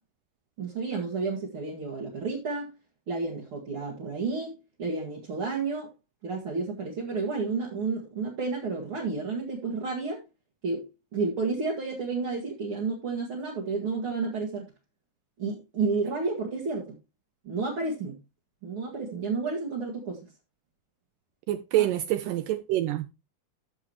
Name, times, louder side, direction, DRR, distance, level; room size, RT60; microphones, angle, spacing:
voice 1, 0.6-2.7 3.1-5.9 6.2-10.2 10.6-10.8 11.1-14.6 15.4-17.0 17.5-18.2 18.6-20.2, right 4 dB, 45° right, 2.0 m, -31 dB
voice 2, 21.5-23.1, right 13 dB, 80° right, 2.0 m, -26 dB
13.5 x 7.0 x 3.0 m
omnidirectional pair, 4.3 m